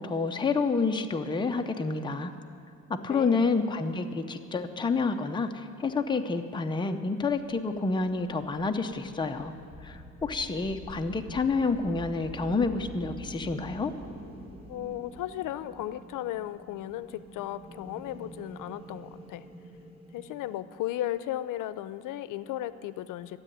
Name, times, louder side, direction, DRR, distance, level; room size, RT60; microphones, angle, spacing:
voice 1, 0.0-2.3 2.9-9.5 9.8-13.9, left 4 dB, 15° left, 5 dB, 0.6 m, -29 dB
voice 2, 3.1-3.5 14.7-19.4 20.1-23.4, left 13 dB, 85° left, 15 dB, 0.6 m, -35 dB
sound 1, 7.3-20.6, equal, 15° right, 1.5 m, -47 dB
13.0 x 7.7 x 10.0 m, 2.6 s
cardioid pair, 135°, 31 cm